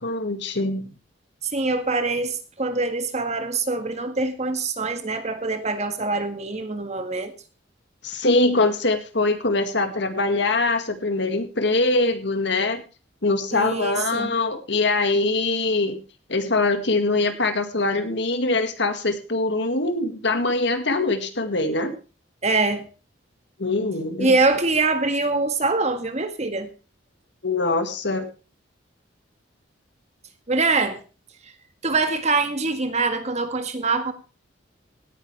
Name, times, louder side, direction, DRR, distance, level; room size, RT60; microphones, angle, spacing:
voice 1, 0.0-0.9 8.0-12.8 13.2-16.0 16.3-21.9 23.6-24.4 27.4-28.3, left 2 dB, 65° left, 2.0 m, -23 dB
voice 2, 1.5-7.3 13.5-14.3 22.4-22.9 24.2-26.7 30.5-31.0 31.8-34.1, right 3 dB, 35° right, 1.7 m, -24 dB
17.5 x 10.0 x 3.4 m
head